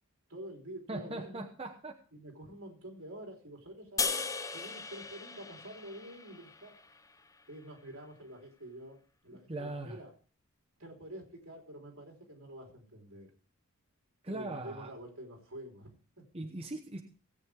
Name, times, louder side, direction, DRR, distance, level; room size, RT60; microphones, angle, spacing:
voice 1, 0.3-1.4 2.1-4.2 4.5-6.7 7.5-9.0 9.2-10.1 10.8-13.3 14.3-16.2, right 1 dB, 70° right, 1 dB, 3.6 m, -47 dB
voice 2, 0.9-2.0 4.5-4.7 9.5-10.0 14.2-14.9 16.3-17.0, right 2 dB, 25° right, 1 dB, 1.0 m, -40 dB
sound 1, 4.0-7.3, left 4 dB, 15° left, 0.6 m, -37 dB
18.0 x 8.5 x 3.4 m, 0.40 s
head